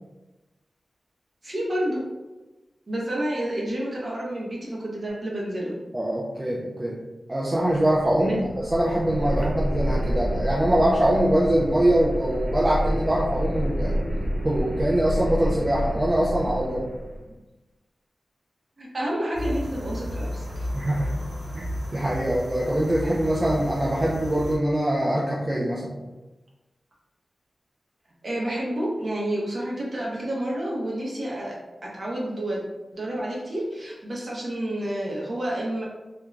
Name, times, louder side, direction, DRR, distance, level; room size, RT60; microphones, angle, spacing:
voice 1, 1.4-2.0 2.9-5.7 8.2-8.5 17.3-17.4 18.8-20.7 28.2-31.5 31.8-32.7 32.9-35.8, right 1 dB, 45° right, -4 dB, 0.7 m, -29 dB
voice 2, 5.9-7.0 7.3-14.0 14.4-16.9 20.7-21.1 21.5-21.6 21.9-26.0, right 1 dB, 20° right, -7 dB, 0.4 m, -23 dB
sound 1, 7.8-17.2, equal, 80° left, 0.8 m, -29 dB
sound 2, 19.3-24.6, equal, 60° right, 1.0 m, -33 dB
2.4 x 2.2 x 3.1 m, 1.1 s
wide cardioid pair, 130°, 0 cm